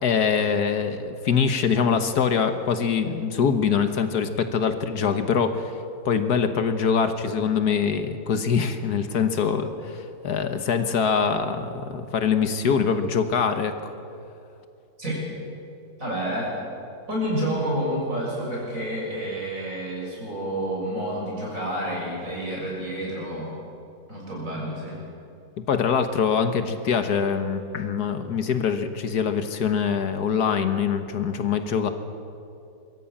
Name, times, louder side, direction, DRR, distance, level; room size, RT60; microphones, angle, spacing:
voice 1, 0.0-5.7 6.0-13.9 25.7-31.9, left 6 dB, 70° left, 9 dB, 1.6 m, -24 dB
voice 2, 16.0-16.5 17.1-23.5 24.1-25.0, right 1 dB, 50° right, -4 dB, 7.4 m, -29 dB
23.0 x 14.0 x 8.7 m, 2.6 s
omnidirectional pair, 1.8 m